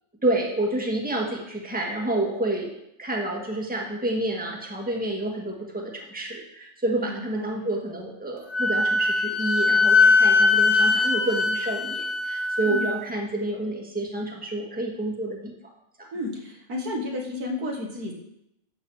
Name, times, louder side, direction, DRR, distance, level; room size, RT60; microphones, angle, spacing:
voice 1, 0.2-2.7 3.0-15.5 16.0-16.1, right 1 dB, 5° right, -1 dB, 1.5 m, -29 dB
voice 2, 6.9-7.7 12.7-12.9 16.1-18.1, left 2 dB, 80° right, 1 dB, 2.1 m, -32 dB
Wind instrument woodwind instrument, 8.5-13.0, left 3 dB, 30° left, 0.6 m, -21 dB
12.0 x 4.0 x 7.2 m, 0.80 s
omnidirectional pair, 1.6 m